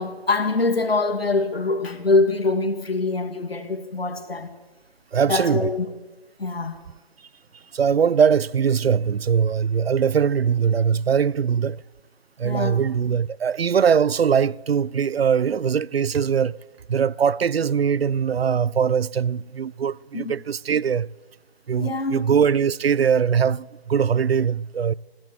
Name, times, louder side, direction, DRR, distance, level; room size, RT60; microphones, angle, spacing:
voice 1, 0.0-4.5 5.3-5.9 6.4-6.8 12.4-12.8 20.1-20.3 21.8-22.2, left 3 dB, 80° left, 2.4 m, -24 dB
voice 2, 5.1-5.7 7.7-11.8 12.4-16.6 16.9-21.1 21.7-24.9, right 7 dB, 80° right, 0.5 m, -21 dB
17.0 x 11.0 x 7.6 m
figure-of-eight pair, 170°, 30 cm